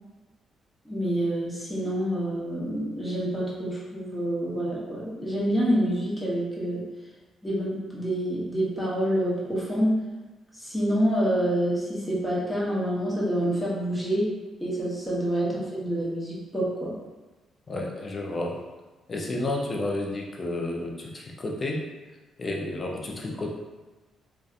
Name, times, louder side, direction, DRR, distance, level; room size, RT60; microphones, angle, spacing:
voice 1, 0.8-6.8 7.4-10.0 10.6-14.3 14.6-16.9, equal, 10° left, -6 dB, 0.8 m, -27 dB
voice 2, 17.7-18.6 19.1-21.8 22.4-23.5, left 2 dB, 35° left, -1 dB, 0.5 m, -31 dB
2.6 x 2.2 x 2.4 m, 1.2 s
cardioid pair, 90°, 0 cm